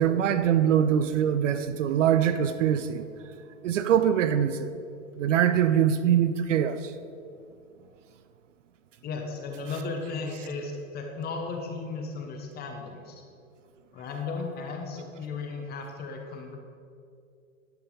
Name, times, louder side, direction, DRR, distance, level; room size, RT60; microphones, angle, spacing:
voice 1, 0.0-3.1 3.6-4.8 5.2-6.9, right 9 dB, 70° right, 11 dB, 0.6 m, -23 dB
voice 2, 9.0-13.2 13.9-16.6, left 4 dB, 25° left, 2 dB, 1.0 m, -35 dB
10.5 x 4.5 x 5.4 m, 2.4 s
hypercardioid pair, 115°, 40 cm